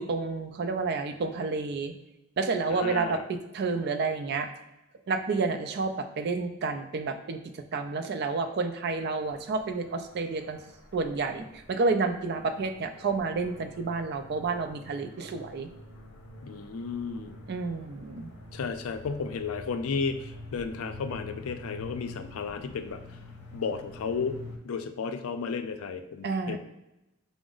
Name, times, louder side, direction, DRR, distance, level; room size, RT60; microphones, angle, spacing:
voice 1, 0.0-1.9 2.4-4.5 5.1-7.4 7.7-10.6 10.9-15.7 17.5-18.3 26.2-26.6, right 4 dB, 50° right, 7 dB, 0.4 m, -30 dB
voice 2, 2.7-3.2 16.4-17.4 18.5-23.0 23.5-24.4 24.6-26.6, left 5 dB, 90° left, 8 dB, 0.4 m, -33 dB
sound 1, 9.2-24.6, left 2 dB, 55° left, 0.7 m, -47 dB
5.9 x 2.0 x 3.8 m, 0.94 s
head